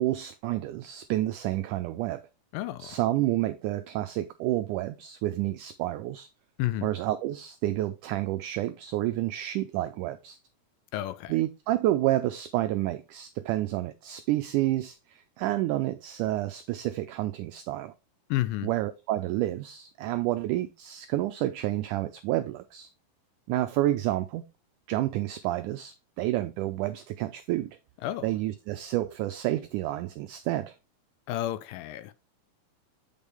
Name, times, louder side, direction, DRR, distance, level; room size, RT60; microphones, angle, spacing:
voice 1, 0.0-2.2 2.8-6.3 6.8-10.4 11.3-17.9 18.6-22.9 23.5-24.4 24.9-27.8 28.2-30.8, right 15 dB, 85° right, 1.8 m, -29 dB
voice 2, 2.5-3.0 6.6-6.9 10.9-11.4 18.3-18.7 28.0-28.3 31.3-32.1, left 14 dB, 80° left, 2.1 m, -31 dB
8.3 x 5.3 x 3.4 m
omnidirectional pair, 4.1 m